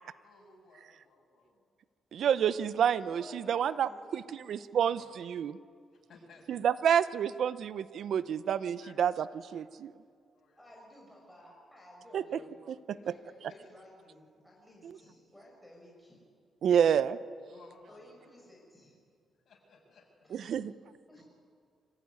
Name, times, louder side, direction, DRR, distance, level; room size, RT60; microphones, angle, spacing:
voice 1, 0.2-1.6 4.7-5.1 5.9-6.6 8.8-9.1 10.3-10.7 13.0-13.1 17.5-18.0 19.5-20.3, left 3 dB, 60° left, 0 dB, 7.1 m, -58 dB
voice 2, 2.1-5.6 6.5-9.3 9.5-9.9 12.1-12.2 14.8-15.0 16.6-17.2 20.3-20.7, right 8 dB, 70° right, 15 dB, 0.7 m, -29 dB
voice 3, 2.8-4.0 10.6-12.6 12.9-16.2 17.9-19.0 20.2-20.7 21.1-21.2, left 1 dB, 5° left, -3 dB, 5.7 m, -55 dB
25.0 x 15.5 x 9.6 m, 2.2 s
cardioid pair, 95°, 0 cm